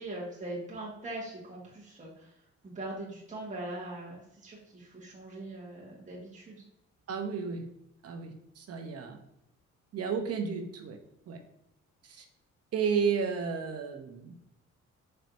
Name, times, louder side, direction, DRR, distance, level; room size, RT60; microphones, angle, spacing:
voice 1, 0.0-2.3 2.6-6.6, right 1 dB, 25° right, -5 dB, 1.3 m, -41 dB
voice 2, 7.1-7.6 8.0-9.2 9.9-11.0 11.3-11.4 12.0-12.2 12.7-14.3, right 6 dB, 55° right, 5 dB, 0.8 m, -32 dB
4.4 x 3.2 x 2.6 m, 0.81 s
cardioid pair, 90°, 30 cm